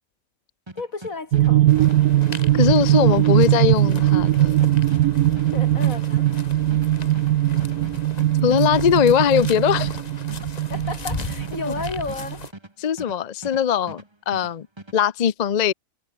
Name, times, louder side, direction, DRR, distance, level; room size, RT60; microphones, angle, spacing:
sound 1, 0.7-13.6 13.9-15.0, right 2 dB, 20° right, 2.3 m, -42 dB
voice 1, 0.8-1.6 5.5-6.3 10.7-12.4, left 4 dB, 65° left, 3.3 m, -32 dB
sound 2, 1.3-12.5, right 14 dB, 85° right, 1.1 m, -20 dB
sound 3, 1.7-12.5, left 5 dB, 30° left, 1.1 m, -38 dB
voice 2, 2.5-4.6 8.4-9.9 11.5-11.7 12.8-14.7 14.9-15.7, left 8 dB, 50° left, 0.5 m, -20 dB
omnidirectional pair, 1.5 m